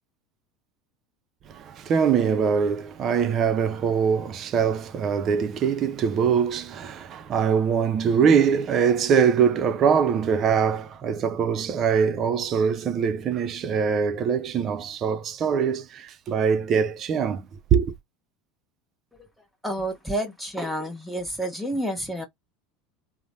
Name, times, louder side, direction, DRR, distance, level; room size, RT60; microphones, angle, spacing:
voice 1, 1.5-17.9, right 7 dB, 45° right, 0.5 m, -23 dB
voice 2, 19.6-22.3, right 1 dB, ahead, 1.0 m, -29 dB
3.1 x 2.0 x 2.6 m
hypercardioid pair, 85°, 0 cm